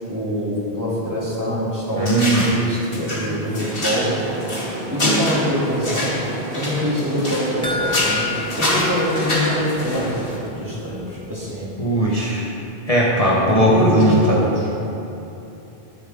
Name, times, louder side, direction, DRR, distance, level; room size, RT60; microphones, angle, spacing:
voice 1, 0.1-4.1 4.9-6.2 6.5-11.7 13.4-14.8, equal, 20° right, -8 dB, 3.0 m, -24 dB
sound 1, 2.0-2.6 2.9-7.6 7.8-10.4, left 1 dB, 60° left, 2.3 m, -25 dB
voice 2, 2.0-2.5 11.8-12.5 12.9-14.4, right 1 dB, 35° left, -5 dB, 1.4 m, -18 dB
sound 2, 4.0-10.3, right 1 dB, 40° right, 1.8 m, -33 dB
sound 3, 7.6-10.2 10.5-10.6 11.0-11.1, left 4 dB, 5° left, 1.0 m, -30 dB
20.5 x 7.4 x 4.0 m, 3.0 s
omnidirectional pair, 1.1 m